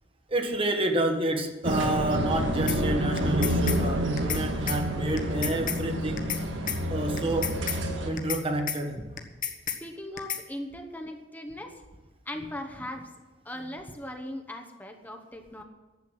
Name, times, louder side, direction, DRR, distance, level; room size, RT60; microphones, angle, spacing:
voice 1, 0.3-6.3 6.9-7.6 8.0-9.0, right 1 dB, 30° right, 5 dB, 1.4 m, -29 dB
sound 1, 1.6-8.1, equal, 80° right, 1.9 m, -28 dB
sound 2, 2.7-2.8 3.2-3.8 4.2-4.4 4.7-4.8 5.2-5.8 6.2-6.4 6.7-6.8 7.2-7.8 8.2-8.4 8.7-8.8 9.2-9.8 10.2-10.4, left 9 dB, 45° left, 1.4 m, -31 dB
voice 2, 9.8-11.8 12.3-13.1 13.4-15.6, left 1 dB, 10° left, 4 dB, 1.1 m, -39 dB
12.0 x 8.1 x 9.7 m, 1.3 s
head